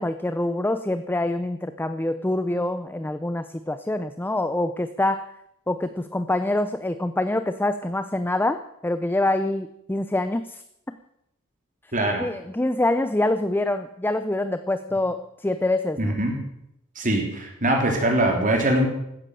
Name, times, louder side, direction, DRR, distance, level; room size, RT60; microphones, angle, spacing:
voice 1, 0.0-5.3 5.7-11.0 12.2-16.2, left 1 dB, 10° left, 11 dB, 0.5 m, -25 dB
voice 2, 11.9-12.2 16.0-16.4 17.0-18.9, right 1 dB, 40° right, 2 dB, 3.7 m, -22 dB
16.0 x 13.0 x 6.8 m, 0.79 s
head